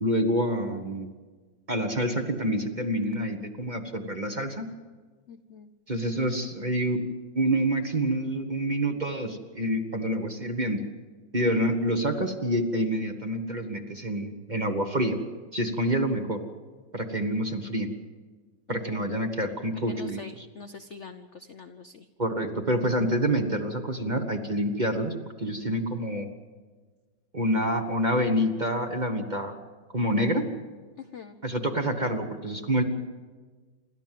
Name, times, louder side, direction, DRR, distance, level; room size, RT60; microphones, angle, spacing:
voice 1, 0.0-1.1 1.7-4.7 5.9-7.0 7.3-10.8 11.3-15.2 15.5-16.4 16.9-17.9 18.7-20.4 22.2-26.3 27.3-29.5 29.9-30.5 31.4-32.8, right 1 dB, 25° right, 5 dB, 1.2 m, -27 dB
voice 2, 5.3-5.7 18.7-19.1 19.9-22.1 31.0-31.4, left 5 dB, 55° left, 8 dB, 0.8 m, -44 dB
27.5 x 13.0 x 7.6 m, 1.4 s
omnidirectional pair, 2.1 m